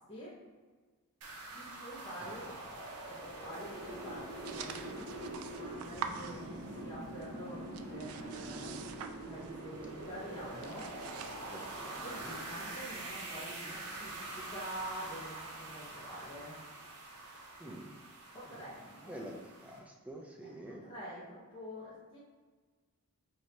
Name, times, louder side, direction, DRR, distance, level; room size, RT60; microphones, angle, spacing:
sound 1, 1.2-19.8, right 2 dB, 85° right, 0.8 m, -44 dB
voice 1, 1.5-2.5 3.1-8.9 9.2-10.9 12.0-16.6 18.3-19.3 20.4-22.2, equal, 25° left, -11 dB, 0.8 m, -47 dB
voice 2, 2.2-2.5 11.5-12.4 17.6-18.0 18.5-18.6 19.1-20.9, right 1 dB, 5° right, 0 dB, 0.5 m, -48 dB
sound 2, 4.4-7.0 7.2-9.7 10.0-10.2 10.5-11.8, right 7 dB, 65° right, 0.3 m, -46 dB
5.1 x 2.8 x 2.8 m, 1.4 s
head